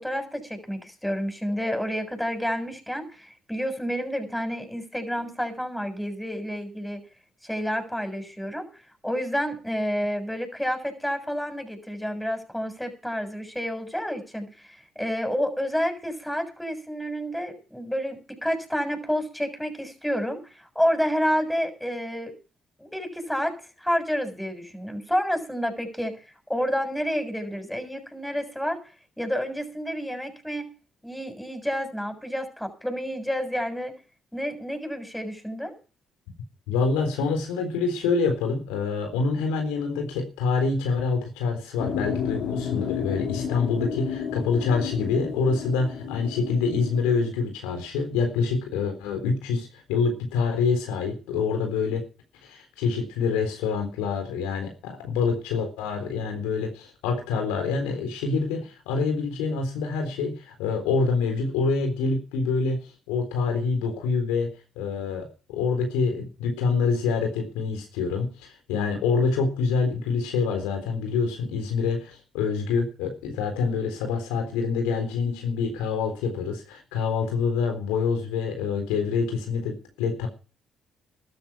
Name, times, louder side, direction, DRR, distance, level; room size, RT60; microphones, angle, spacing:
voice 1, 0.0-7.0 7.4-8.7 9.0-22.3 22.8-26.1 26.5-28.8 29.2-30.6 31.0-33.9 34.3-35.7, equal, 5° left, 7 dB, 7.0 m, -29 dB
voice 2, 36.7-52.0 52.4-80.3, left 4 dB, 85° left, 5 dB, 3.8 m, -26 dB
sound 1, 41.8-47.3, left 7 dB, 70° left, 4.0 m, -32 dB
13.5 x 13.0 x 5.9 m, 0.35 s
supercardioid pair, 55°, 0 cm